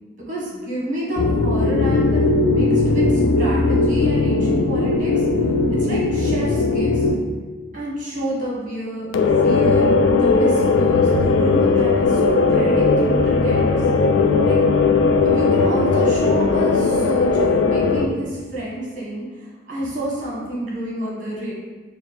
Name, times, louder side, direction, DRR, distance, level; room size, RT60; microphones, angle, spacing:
voice 1, 0.3-5.1 5.8-7.1 7.7-12.2 12.5-13.8 14.4-14.6 15.2-21.5, right 1 dB, 45° right, -5 dB, 1.2 m, -29 dB
sound 1, 1.2-7.1 9.1-18.1, left 3 dB, 80° left, 0.4 m, -18 dB
4.1 x 2.1 x 4.0 m, 1.3 s
head